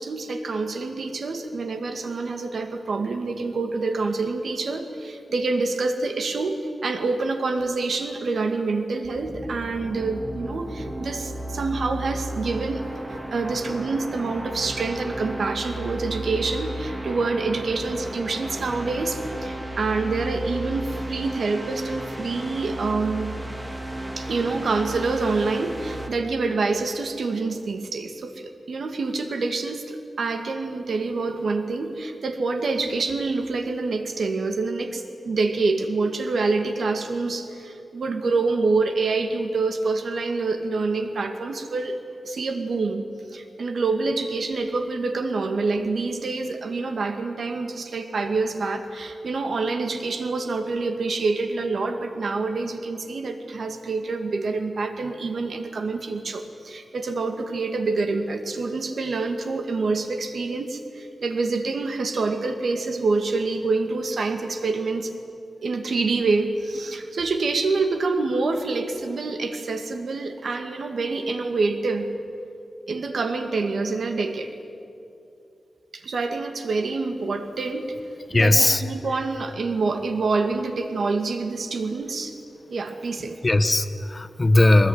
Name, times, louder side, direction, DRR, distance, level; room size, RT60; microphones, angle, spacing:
voice 1, 0.0-23.3 24.2-42.0 42.2-43.0 43.3-65.1 65.6-72.1 72.9-74.5 75.9-78.0 78.3-82.3 82.7-83.4, right 3 dB, 65° right, 6 dB, 2.1 m, -26 dB
sound 1, 9.0-26.1, right 1 dB, 15° right, 2.0 m, -34 dB
voice 2, 78.3-78.8 83.4-84.9, left 2 dB, 25° left, 11 dB, 0.9 m, -18 dB
22.0 x 20.0 x 9.6 m, 2.6 s
wide cardioid pair, 140°, 0 cm